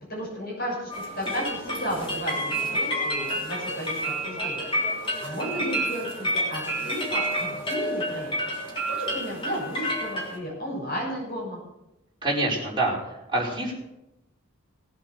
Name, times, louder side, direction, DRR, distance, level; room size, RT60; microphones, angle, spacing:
voice 1, 0.1-11.6, equal, 50° left, -4 dB, 6.8 m, -34 dB
sound 1, 0.9-10.4, right 1 dB, 25° left, 3.5 m, -29 dB
voice 2, 12.2-12.9 13.3-13.7, right 2 dB, 25° right, -4 dB, 4.9 m, -25 dB
18.5 x 8.2 x 6.5 m, 0.90 s
head